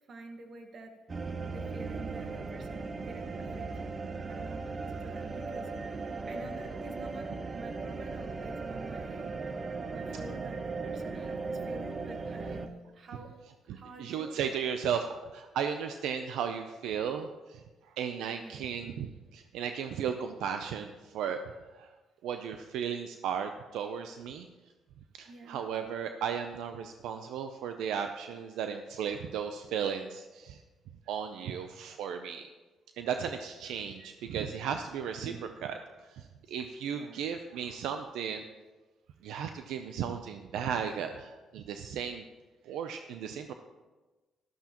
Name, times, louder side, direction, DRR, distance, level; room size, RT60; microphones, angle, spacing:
voice 1, 0.1-1.0 1.5-4.0 4.3-9.3 9.9-13.3 13.6-14.6 18.4-18.7 25.2-25.6 31.4-31.5 35.2-35.5 36.9-37.2, right 2 dB, 55° right, 4 dB, 1.6 m, -48 dB
sound 1, 1.1-12.7, right 4 dB, 35° right, 0.8 m, -37 dB
voice 2, 13.7-17.6 18.0-21.4 21.7-21.9 22.2-24.5 25.1-30.6 31.1-32.5 33.0-38.4 39.2-42.2 42.6-43.5, right 7 dB, 85° right, 7 dB, 0.5 m, -35 dB
13.0 x 12.5 x 3.0 m, 1.2 s
cardioid pair, 90°, 0 cm